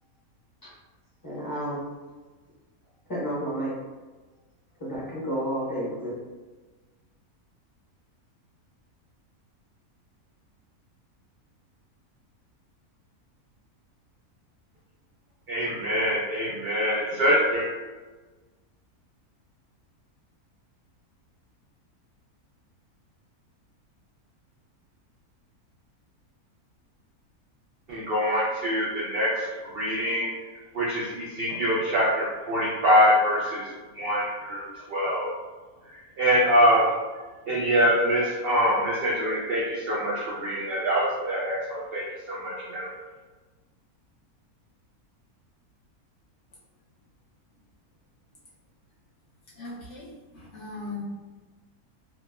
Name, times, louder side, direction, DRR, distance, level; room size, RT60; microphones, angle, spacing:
voice 1, 1.2-1.8 3.1-3.7 4.8-6.2, right 1 dB, 20° left, -8 dB, 0.6 m, -31 dB
voice 2, 15.5-17.7 27.9-30.5 30.7-33.7 33.9-35.3 35.9-36.9 37.5-42.9, equal, 80° right, -6 dB, 0.5 m, -24 dB
voice 3, 49.5-51.0, left 3 dB, 65° left, -6 dB, 0.8 m, -39 dB
2.9 x 2.1 x 2.2 m, 1.3 s
omnidirectional pair, 1.6 m